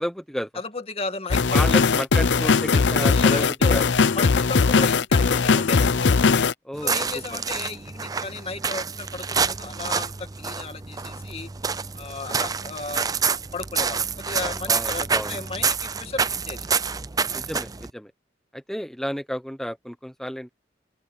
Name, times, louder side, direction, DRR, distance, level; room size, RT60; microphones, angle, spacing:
voice 1, 0.0-0.5 1.5-3.8 6.6-7.0 14.7-15.3 17.3-18.1 18.5-20.5, equal, ahead, 0.8 m, -31 dB
voice 2, 0.5-1.8 2.4-3.8 4.2-6.1 6.8-11.5 11.9-16.7, left 3 dB, 35° left, 1.9 m, -34 dB
sound 1, 1.3-6.5, left 4 dB, 90° left, 0.6 m, -19 dB
sound 2, 6.7-17.9, right 5 dB, 20° right, 0.5 m, -27 dB
open air
head